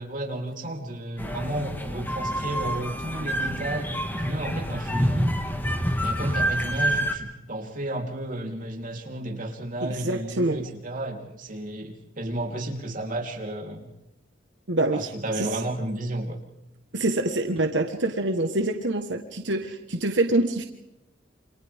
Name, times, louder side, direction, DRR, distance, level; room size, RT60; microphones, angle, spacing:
voice 1, 0.0-5.4 6.0-13.9 14.9-16.4, right 1 dB, 45° right, 0 dB, 3.7 m, -32 dB
sound 1, 1.2-7.1, equal, 10° left, 2.0 m, -27 dB
voice 2, 9.8-10.6 14.7-15.1 15.4-15.5 16.9-20.6, right 2 dB, 90° right, 5 dB, 1.5 m, -25 dB
29.0 x 26.5 x 3.7 m, 0.92 s
head